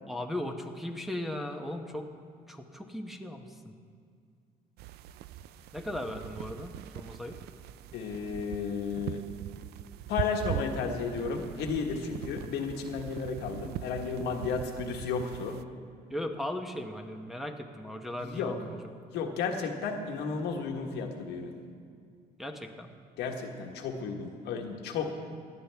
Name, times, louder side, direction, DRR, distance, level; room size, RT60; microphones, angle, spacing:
voice 1, 0.1-2.1 2.5-3.8 5.7-7.4 16.1-18.9 22.4-22.9, left 1 dB, ahead, 2 dB, 0.9 m, -37 dB
sound 1, 4.8-15.6, right 11 dB, 70° right, 0.4 m, -41 dB
voice 2, 7.9-9.2 10.1-15.6 18.2-18.5 19.1-21.5 23.2-25.1, left 5 dB, 80° left, 3 dB, 1.4 m, -33 dB
18.0 x 11.5 x 3.5 m, 2.3 s
cardioid pair, 110°, 17 cm